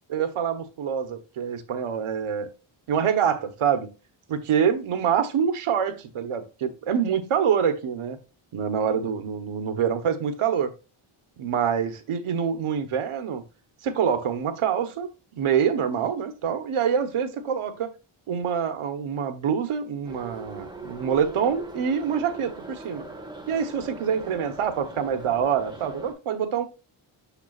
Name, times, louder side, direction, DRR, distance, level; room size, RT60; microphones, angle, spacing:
voice 1, 0.1-2.5 2.9-3.9 4.3-8.2 8.5-10.7 11.4-13.4 13.8-15.1 15.4-17.9 18.3-23.0 23.5-26.6, right 7 dB, 85° right, 1.2 m, -26 dB
Subway metro underground, 20.0-26.1, right 2 dB, 10° right, 1.5 m, -40 dB
6.8 x 5.8 x 2.4 m
wide cardioid pair, 125°, 49 cm